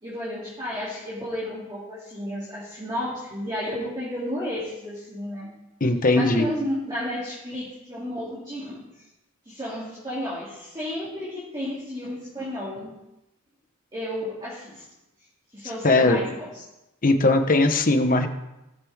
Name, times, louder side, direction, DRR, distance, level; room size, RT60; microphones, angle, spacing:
voice 1, 0.0-5.5 6.1-8.8 9.4-12.9 13.9-14.8 15.5-16.6, equal, 20° right, -8 dB, 2.8 m, -32 dB
voice 2, 5.8-6.5 15.8-16.2 17.0-18.3, left 2 dB, 40° left, 6 dB, 1.1 m, -19 dB
18.0 x 6.7 x 3.6 m, 0.94 s
head